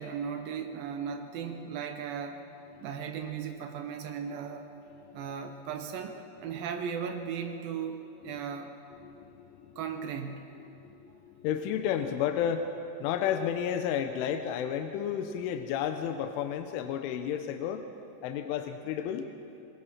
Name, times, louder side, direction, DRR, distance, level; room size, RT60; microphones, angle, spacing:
voice 1, 0.0-2.4 2.8-4.7 5.1-8.7 9.8-10.6, right 7 dB, 80° right, 5 dB, 2.1 m, -37 dB
voice 2, 9.0-9.7 10.7-17.9 18.2-19.3, left 9 dB, 80° left, 7 dB, 3.3 m, -32 dB
25.5 x 20.5 x 5.7 m, 2.7 s
omnidirectional pair, 5.6 m